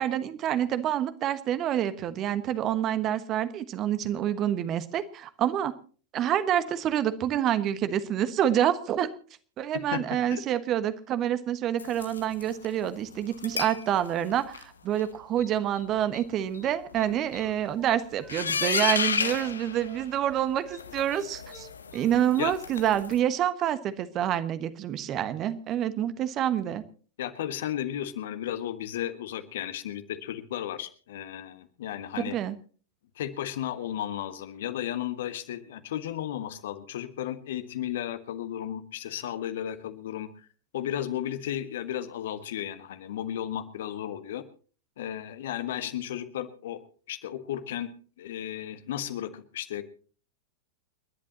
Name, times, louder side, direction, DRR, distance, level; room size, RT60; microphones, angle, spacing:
voice 1, 0.0-5.7 6.1-9.1 9.6-21.7 21.9-26.8 32.3-32.6, right 10 dB, 35° right, 13 dB, 1.3 m, -27 dB
sound 1, 11.8-12.7 13.3-13.8 14.2-14.6 15.0-15.1 15.4-15.5 15.8-15.9 16.1-16.2 16.5-16.6 16.9-17.5 18.3-20.4 20.7-23.2, left 5 dB, 75° left, 1.1 m, -32 dB
Wind instrument woodwind instrument, 16.6-21.2 21.5-22.6 22.8-23.0, right 4 dB, 15° right, 2.3 m, -50 dB
voice 2, 27.2-32.4 33.2-40.3 40.7-44.4 45.0-46.8 47.1-47.9 48.2-49.8, left 11 dB, 60° left, 10 dB, 1.5 m, -34 dB
30.0 x 11.0 x 2.9 m, 0.40 s
figure-of-eight pair, 90°, 0 cm